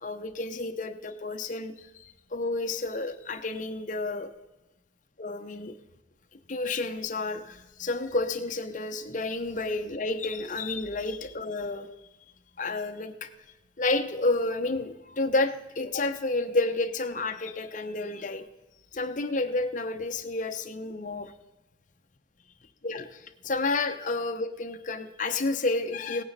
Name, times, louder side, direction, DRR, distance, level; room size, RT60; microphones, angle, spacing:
voice 1, 0.0-4.3 5.2-5.7 6.5-11.9 12.6-13.3 13.8-18.5 18.9-21.3 22.8-26.2, left 2 dB, 45° left, 0.9 m, -30 dB
17.5 x 9.3 x 4.1 m
head